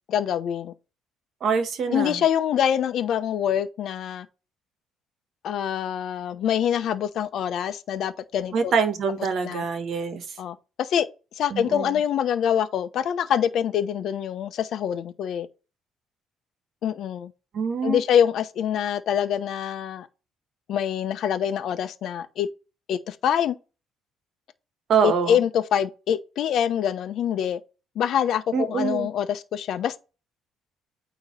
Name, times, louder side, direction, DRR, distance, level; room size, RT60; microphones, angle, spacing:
voice 1, 0.1-0.7 1.9-4.3 5.4-8.7 9.4-9.6 10.4-11.1 11.4-15.5 16.8-17.3 17.8-20.1 20.7-22.5 22.9-23.6 25.0-27.6 27.9-30.0, left 9 dB, 60° left, 0.9 m, -25 dB
voice 2, 1.4-2.2 8.5-10.2 11.5-11.9 17.5-18.0 24.9-25.4 28.5-29.1, right 6 dB, 50° right, 1.4 m, -25 dB
9.0 x 3.1 x 5.3 m
cardioid pair, 130°, 0 cm